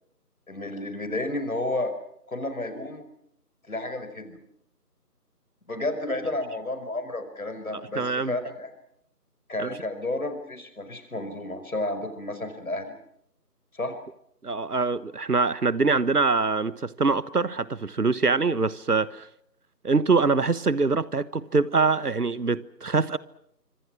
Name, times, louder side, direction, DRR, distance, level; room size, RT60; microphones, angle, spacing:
voice 1, 0.5-1.9 2.3-3.1 3.7-4.4 5.7-8.7 9.5-12.9 13.7-14.0, left 2 dB, 60° left, 5.2 m, -31 dB
voice 2, 7.9-8.3 9.6-9.7 14.4-19.2 19.8-23.2, right 4 dB, 70° right, 1.4 m, -24 dB
26.5 x 25.5 x 6.2 m
figure-of-eight pair, 170°, 49 cm